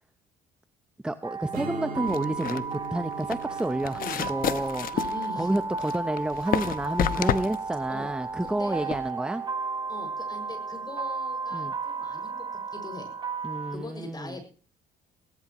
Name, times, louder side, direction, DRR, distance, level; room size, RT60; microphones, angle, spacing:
voice 1, 1.0-4.9 5.4-9.4 11.5-11.7 13.4-14.4, right 1 dB, 5° right, 10 dB, 0.8 m, -30 dB
sound 1, 1.2-13.8, right 4 dB, 25° right, 2.6 m, -34 dB
Strum, 1.5-6.9, right 3 dB, 65° right, 4.6 m, -42 dB
sound 2, 2.1-9.1, left 10 dB, 60° left, 1.0 m, -31 dB
voice 2, 4.9-5.6 7.0-7.2 7.9-8.1 8.4-8.9 9.9-12.4 12.7-13.1 13.7-14.5, left 2 dB, 25° left, 6 dB, 6.2 m, -41 dB
18.5 x 18.0 x 3.1 m, 0.38 s
cardioid pair, 110°, 17 cm